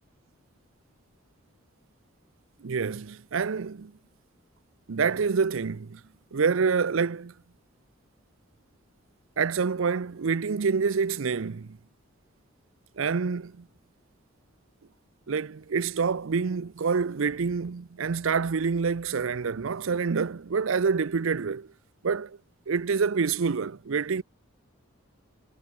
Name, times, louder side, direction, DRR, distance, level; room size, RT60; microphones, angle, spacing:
voice 1, 2.6-3.9 4.9-6.0 6.3-7.3 9.4-11.8 13.0-13.7 15.3-21.7 22.0-22.4 22.7-24.2, right 5 dB, 70° right, 0.5 m, -27 dB
head